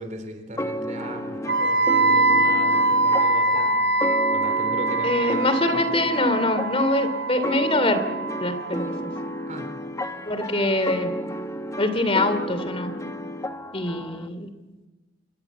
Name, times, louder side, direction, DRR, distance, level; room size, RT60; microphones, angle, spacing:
voice 1, 0.0-3.7 4.3-5.9 9.5-9.7, right 1 dB, 45° right, 7 dB, 3.7 m, -37 dB
sound 1, 0.6-14.3, equal, 15° left, 1.5 m, -32 dB
Wind instrument woodwind instrument, 1.5-9.4, right 2 dB, 75° right, 3.9 m, -23 dB
voice 2, 5.0-8.0 8.4-9.1 10.2-11.1 11.8-12.9 13.7-14.5, left 2 dB, 35° left, 11 dB, 2.9 m, -24 dB
26.5 x 23.0 x 8.3 m, 1.1 s
head